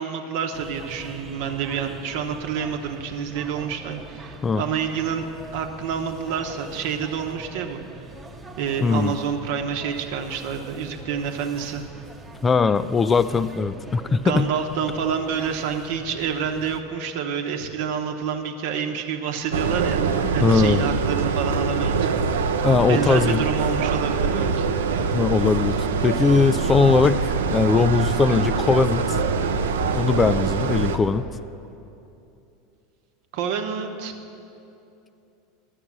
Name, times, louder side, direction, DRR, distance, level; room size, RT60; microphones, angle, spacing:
voice 1, 0.0-7.8 8.6-11.8 14.1-20.0 20.3-22.5 22.9-24.7 33.3-34.1, right 7 dB, 65° right, 5 dB, 0.9 m, -28 dB
sound 1, 0.5-16.8, right 2 dB, 15° right, 0.9 m, -42 dB
voice 2, 8.8-9.1 12.4-14.5 20.2-20.8 22.6-23.4 25.1-29.2 29.9-31.3, left 4 dB, 20° left, 13 dB, 0.3 m, -20 dB
sound 2, 19.5-31.0, right 5 dB, 85° right, 0.5 m, -24 dB
10.5 x 6.5 x 7.3 m, 2.8 s
hypercardioid pair, 95°, 0 cm